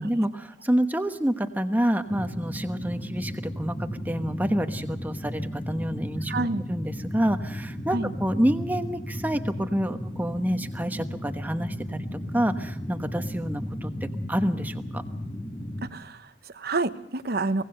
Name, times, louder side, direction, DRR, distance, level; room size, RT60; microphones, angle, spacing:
voice 1, 0.0-6.4 6.7-12.0 12.3-15.0, equal, 10° right, 7 dB, 1.1 m, -28 dB
sound 1, 2.1-15.9, equal, 25° left, 1.6 m, -35 dB
voice 2, 6.3-6.6 7.9-8.1 15.9-17.7, right 3 dB, 55° right, 12 dB, 0.9 m, -29 dB
24.0 x 18.0 x 6.7 m, 0.77 s
head